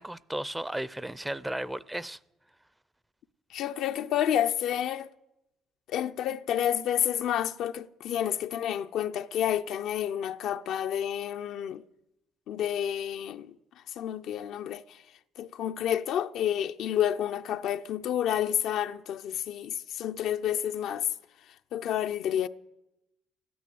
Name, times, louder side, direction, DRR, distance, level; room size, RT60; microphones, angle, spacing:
voice 1, 0.0-2.2, right 1 dB, 10° right, 0.5 m, -34 dB
voice 2, 3.5-5.1 5.9-11.8 12.5-13.5 14.0-14.8 15.4-21.1 21.7-22.5, left 10 dB, 70° left, 0.5 m, -29 dB
13.5 x 9.4 x 9.3 m
supercardioid pair, 80°, 0 cm